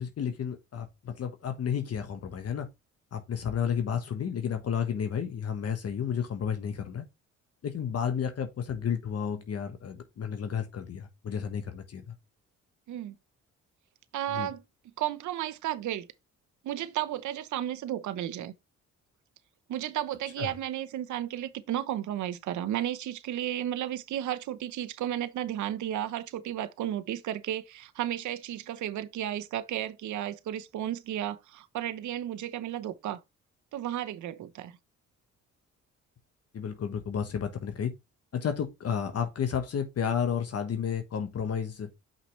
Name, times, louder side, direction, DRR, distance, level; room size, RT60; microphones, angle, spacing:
voice 1, 0.0-2.7 3.1-7.0 7.6-12.1 14.3-14.5 20.4-20.5 36.5-37.9 38.3-41.9, left 7 dB, 55° left, 1.3 m, -32 dB
voice 2, 14.1-14.6 15.0-16.1 16.6-18.5 19.7-33.2 33.7-34.8, right 12 dB, 75° right, 0.9 m, -33 dB
5.8 x 5.8 x 3.1 m
cardioid pair, 90°, 30 cm